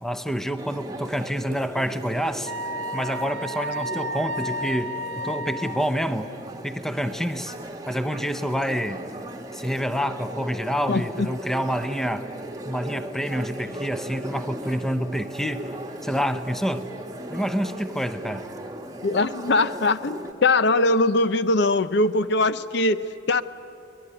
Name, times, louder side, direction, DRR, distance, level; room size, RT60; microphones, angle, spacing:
voice 1, 0.0-2.5 2.9-4.9 5.2-6.3 6.6-7.5 7.9-9.0 9.5-12.3 12.6-15.8 16.0-16.9 17.3-18.4, equal, ahead, 10 dB, 0.7 m, -27 dB
sound 1, 0.6-20.3, right 1 dB, 20° right, 1.2 m, -37 dB
Wind instrument woodwind instrument, 2.5-5.9, equal, 75° right, 0.8 m, -32 dB
voice 2, 10.9-11.3 19.0-23.4, left 2 dB, 60° left, 14 dB, 0.6 m, -21 dB
22.5 x 20.5 x 9.8 m, 2.7 s
head